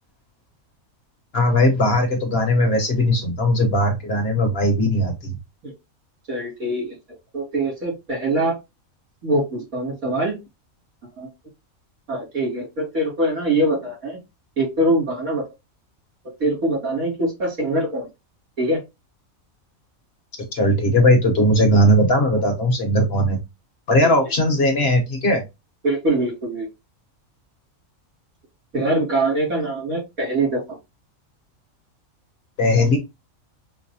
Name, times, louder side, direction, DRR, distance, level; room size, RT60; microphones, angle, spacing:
voice 1, 1.3-5.3 20.5-23.4 23.9-25.4 32.6-33.0, left 1 dB, 50° left, 4 dB, 1.0 m, -18 dB
voice 2, 6.3-7.0 7.3-8.6 9.2-10.4 11.2-11.3 12.1-14.2 14.6-15.4 16.4-18.1 18.6-18.8 24.0-24.2 25.8-26.7 28.7-30.8, right 1 dB, 85° right, -3 dB, 3.1 m, -23 dB
5.3 x 2.0 x 2.7 m, 0.22 s
omnidirectional pair, 1.5 m